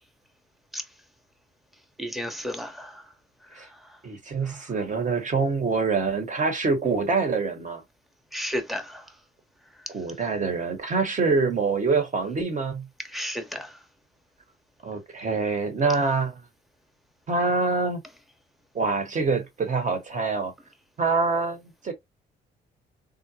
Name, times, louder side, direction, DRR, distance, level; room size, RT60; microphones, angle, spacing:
voice 1, 2.0-3.1 3.5-3.9 4.4-4.6 8.3-9.1 13.1-13.8, equal, ahead, 0.8 m, -33 dB
voice 2, 4.0-7.8 9.9-12.9 14.8-16.3 17.3-18.0 18.7-20.5 21.0-21.9, right 4 dB, 40° right, 1.1 m, -25 dB
3.8 x 2.1 x 2.8 m
cardioid pair, 90°, 20 cm